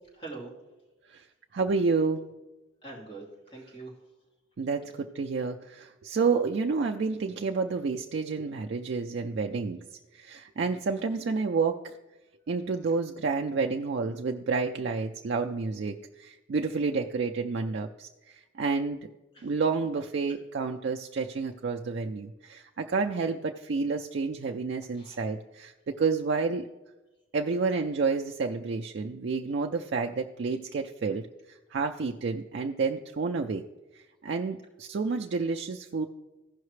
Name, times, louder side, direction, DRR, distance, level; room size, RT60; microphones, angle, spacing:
voice 1, 0.1-0.5 2.8-4.0 19.3-19.5 24.9-25.2, right 3 dB, 25° left, 2.3 m, -44 dB
voice 2, 1.5-2.3 4.6-9.8 10.1-11.9 12.5-19.0 19.4-26.7 27.3-33.6 33.9-36.1, right 4 dB, 60° right, 0.4 m, -30 dB
15.0 x 5.7 x 3.2 m
head